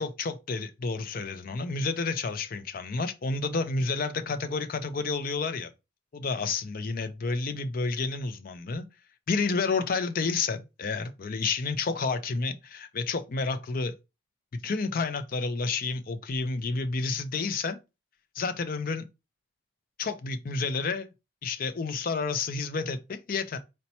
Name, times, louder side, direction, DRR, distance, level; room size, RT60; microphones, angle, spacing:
voice 1, 0.0-5.7 6.1-8.8 9.3-14.0 14.5-17.8 18.4-19.0 20.0-21.1 21.4-23.6, left 4 dB, 45° left, 0.4 m, -30 dB
4.1 x 2.1 x 4.2 m
head